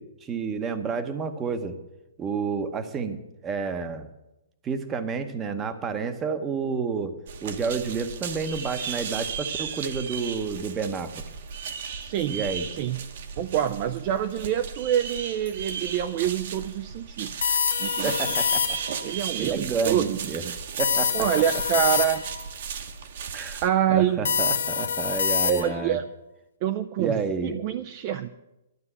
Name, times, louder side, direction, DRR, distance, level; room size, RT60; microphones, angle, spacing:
voice 1, 0.0-1.8 2.2-4.1 4.6-7.1 7.4-11.2 12.3-12.7 18.0-18.8 19.4-21.6 23.3-23.6 23.9-26.0 27.0-27.6, right 5 dB, 15° right, 9 dB, 0.8 m, -30 dB
sound 1, 7.3-23.7, right 7 dB, 50° right, 1.1 m, -35 dB
voice 2, 12.0-12.4 12.7-13.0 13.4-17.3 17.8-18.1 19.0-20.4 21.1-22.2 23.6-24.3 25.4-26.0 26.6-27.1 27.4-28.3, right 11 dB, 30° right, 9 dB, 0.4 m, -26 dB
sound 2, 17.4-19.1 20.8-22.5 24.3-25.9, left 7 dB, 80° left, 1.0 m, -26 dB
12.0 x 6.8 x 9.7 m, 0.94 s
hypercardioid pair, 165°, 0 cm